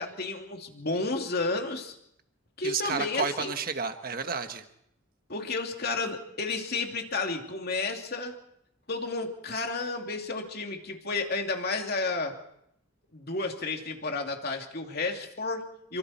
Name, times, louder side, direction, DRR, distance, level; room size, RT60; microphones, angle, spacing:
voice 1, 0.0-1.9 2.6-3.5 5.3-8.3 8.9-12.4 13.1-16.0, left 3 dB, 50° left, 3 dB, 2.8 m, -32 dB
voice 2, 2.6-4.6, right 5 dB, 45° right, 7 dB, 1.4 m, -31 dB
28.0 x 24.5 x 4.4 m, 0.75 s
head